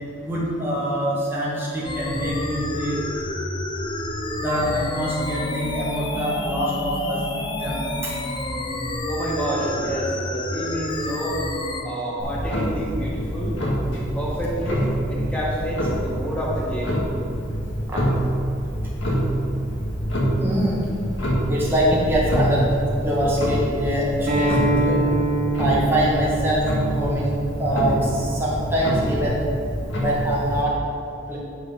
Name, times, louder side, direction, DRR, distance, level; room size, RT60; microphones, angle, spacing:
voice 1, 0.2-3.0 4.4-7.2 7.6-8.2 17.9-18.1 20.4-20.8 21.5-22.7 23.0-25.1 25.6-26.6 26.9-27.3 27.6-29.4 30.0-30.8 31.3-31.4, equal, 10° right, -6 dB, 1.8 m, -24 dB
sound 1, 1.8-11.8, left 1 dB, 25° left, 0.6 m, -29 dB
voice 2, 9.1-11.4 11.8-13.6 13.9-17.0, right 1 dB, 5° left, -6 dB, 1.8 m, -28 dB
Clock, 12.2-30.6, equal, 70° left, 1.7 m, -26 dB
Acoustic guitar, 24.3-29.5, right 2 dB, 50° right, 2.1 m, -26 dB
8.7 x 5.0 x 5.8 m, 2.6 s
head